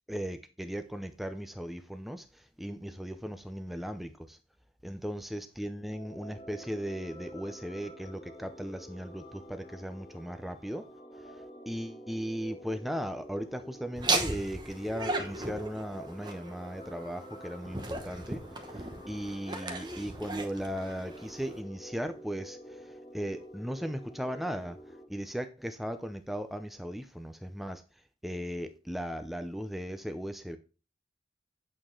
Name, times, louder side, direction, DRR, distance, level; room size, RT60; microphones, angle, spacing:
voice 1, 0.1-4.4 4.8-10.8 11.2-27.8 28.2-30.6, equal, ahead, 0.5 m, -37 dB
sound 1, 5.7-25.0, equal, 35° left, 1.6 m, -49 dB
Laughter, 14.0-21.6, right 2 dB, 25° right, 1.0 m, -36 dB
8.7 x 6.8 x 3.7 m
head